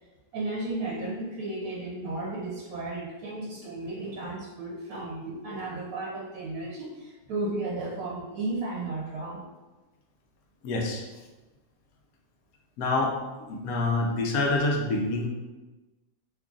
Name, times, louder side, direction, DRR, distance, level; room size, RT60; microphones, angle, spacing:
voice 1, 0.3-9.4, right 2 dB, 90° right, -4 dB, 1.1 m, -34 dB
voice 2, 10.6-11.0 12.8-15.3, left 2 dB, 85° left, 0 dB, 1.1 m, -27 dB
3.0 x 2.3 x 3.7 m, 1.2 s
omnidirectional pair, 1.5 m